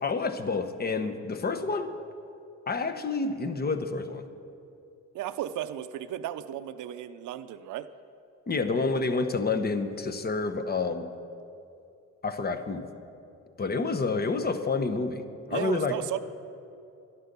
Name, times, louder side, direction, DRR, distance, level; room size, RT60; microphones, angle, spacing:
voice 1, 0.0-2.0 2.7-4.2 8.5-11.1 12.2-12.9 13.6-15.9, left 4 dB, 30° left, 8 dB, 1.0 m, -29 dB
voice 2, 5.1-7.9 15.5-16.2, right 11 dB, 80° right, 11 dB, 0.6 m, -34 dB
11.5 x 11.0 x 6.8 m, 2.6 s
cardioid pair, 90°, 30 cm